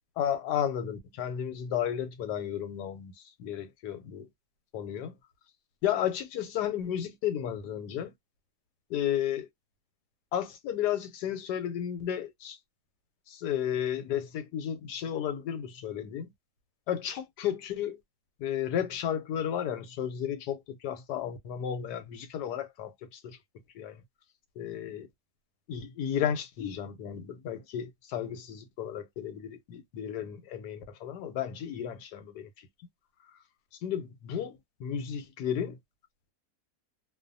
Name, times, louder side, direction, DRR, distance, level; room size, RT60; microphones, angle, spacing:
voice 1, 0.2-3.1 3.4-4.3 4.7-5.1 5.8-8.1 8.9-9.5 10.3-12.6 13.3-16.3 16.9-18.0 18.4-23.4 23.7-24.0 24.6-25.1 25.7-32.5 33.8-35.8, left 9 dB, 90° left, 1.2 m, -33 dB
2.6 x 2.2 x 2.5 m
omnidirectional pair, 1.8 m